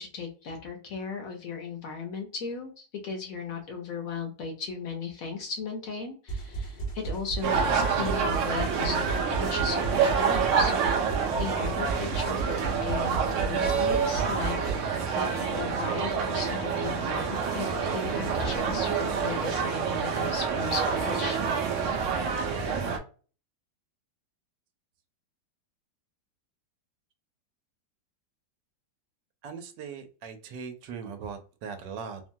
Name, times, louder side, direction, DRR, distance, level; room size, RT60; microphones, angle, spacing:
voice 1, 0.0-10.7 11.4-21.4 21.7-21.8, left 5 dB, 65° left, 3 dB, 0.9 m, -37 dB
sound 1, 6.3-14.8, right 4 dB, 40° left, 0.7 m, -35 dB
sound 2, 7.4-23.0, right 6 dB, 70° right, 0.7 m, -27 dB
voice 2, 29.4-32.2, right 6 dB, 85° right, 7 dB, 1.3 m, -39 dB
3.1 x 2.2 x 2.6 m, 0.37 s
omnidirectional pair, 1.9 m